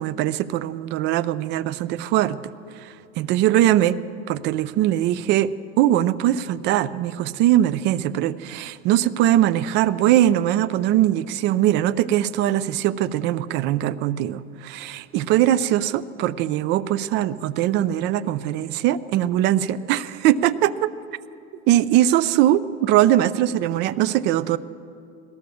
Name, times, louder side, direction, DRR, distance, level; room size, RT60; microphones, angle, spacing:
voice 1, 0.0-2.4 2.8-4.0 4.3-20.9 21.7-24.6, right 12 dB, 30° right, 17 dB, 0.5 m, -21 dB
21.0 x 17.5 x 7.0 m, 2.5 s
supercardioid pair, 160°, 34 cm